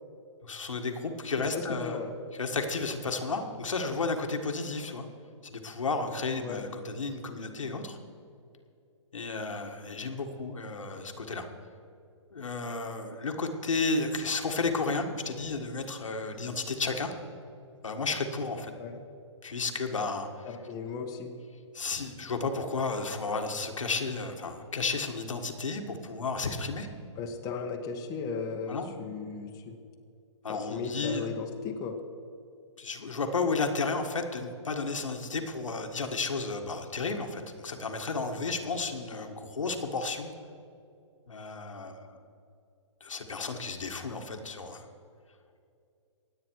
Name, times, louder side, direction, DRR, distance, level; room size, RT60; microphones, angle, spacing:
voice 1, 0.4-2.0 2.4-5.1 5.4-8.0 9.1-11.5 12.3-17.1 17.8-18.7 19.4-20.3 21.7-26.9 28.7-28.9 30.4-31.3 32.8-40.3 41.3-42.2 43.0-44.9, left 3 dB, 85° left, 4 dB, 1.8 m, -32 dB
voice 2, 1.5-2.1 6.4-6.6 18.8-19.0 20.4-21.3 27.2-29.8 30.5-32.0, left 5 dB, 20° left, 2 dB, 1.5 m, -36 dB
23.5 x 9.3 x 4.7 m, 2.5 s
hypercardioid pair, 135°, 16 cm